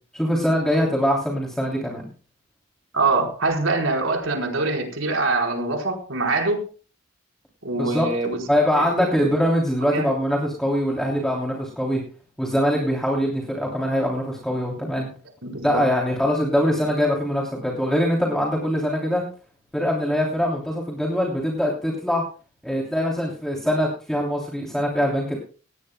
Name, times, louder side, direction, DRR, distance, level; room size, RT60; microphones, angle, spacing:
voice 1, 0.1-2.1 7.8-8.1 8.5-12.0 12.4-15.1 15.6-19.2 19.7-22.2 22.6-25.4, equal, ahead, -2 dB, 3.1 m, -23 dB
voice 2, 2.9-6.7 7.6-8.4 8.8-9.1 9.8-10.1 15.4-15.8, right 3 dB, 80° right, 1 dB, 4.5 m, -24 dB
19.0 x 18.0 x 2.3 m, 0.37 s
head